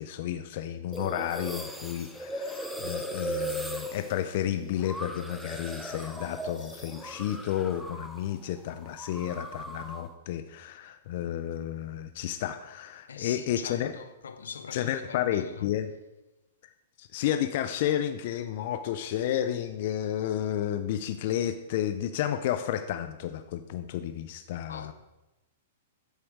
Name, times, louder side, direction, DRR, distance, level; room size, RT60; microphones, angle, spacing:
voice 1, 0.0-14.0 14.7-15.9 17.0-24.9, left 11 dB, 55° left, 0.6 m, -31 dB
sound 1, 0.9-8.3 8.6-10.1, right 1 dB, ahead, 1.0 m, -38 dB
voice 2, 13.1-15.7 24.7-24.9, left 6 dB, 85° left, 0.8 m, -42 dB
10.5 x 7.8 x 4.7 m
hypercardioid pair, 130°, 0 cm